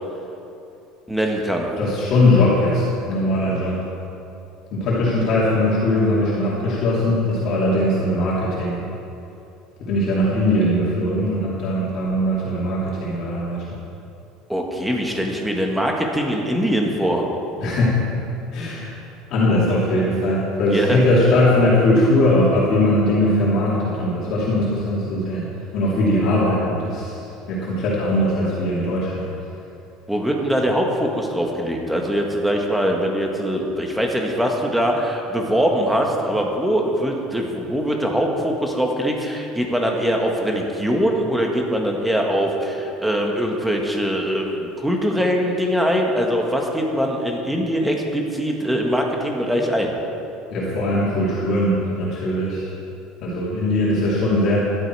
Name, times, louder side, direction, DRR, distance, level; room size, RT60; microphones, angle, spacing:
voice 1, 1.1-1.7 14.5-17.2 20.7-21.0 30.1-49.9, equal, 5° right, 1 dB, 1.5 m, -22 dB
voice 2, 1.8-3.8 4.7-8.8 9.8-13.7 17.6-18.0 18.5-19.0 19.3-25.5 25.7-27.2 27.5-29.3 50.5-52.7 53.2-54.6, left 1 dB, 50° left, -7 dB, 2.9 m, -20 dB
14.0 x 11.5 x 4.8 m, 2.8 s
cardioid pair, 155°, 0 cm